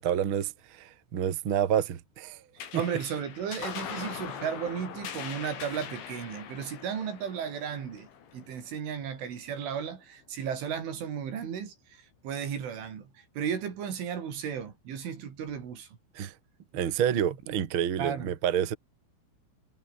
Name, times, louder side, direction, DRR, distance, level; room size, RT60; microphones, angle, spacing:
voice 1, 0.0-2.4 2.7-2.8 16.1-16.3 16.7-18.7, right 9 dB, 60° right, 1.3 m, -28 dB
sound 1, 2.6-9.4, left 8 dB, 80° left, 5.8 m, -42 dB
voice 2, 2.7-8.1 8.3-16.0 17.1-17.5 18.0-18.3, right 8 dB, 85° right, 6.6 m, -35 dB
omnidirectional pair, 5.4 m